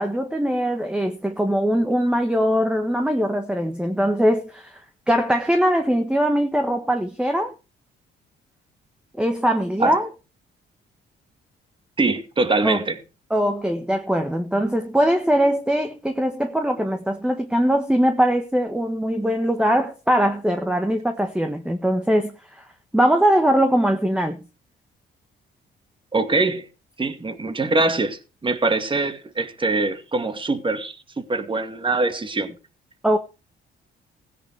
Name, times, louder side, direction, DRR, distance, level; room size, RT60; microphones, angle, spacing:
voice 1, 0.0-7.5 9.2-10.1 12.6-12.8 13.3-22.6 22.9-24.4 33.0-33.2, equal, 5° right, 1.5 m, -21 dB
voice 2, 12.0-13.0 26.1-26.7 27.0-32.5, right 3 dB, 25° right, 2.3 m, -23 dB
16.5 x 10.0 x 4.8 m
cardioid pair, 90°, 20 cm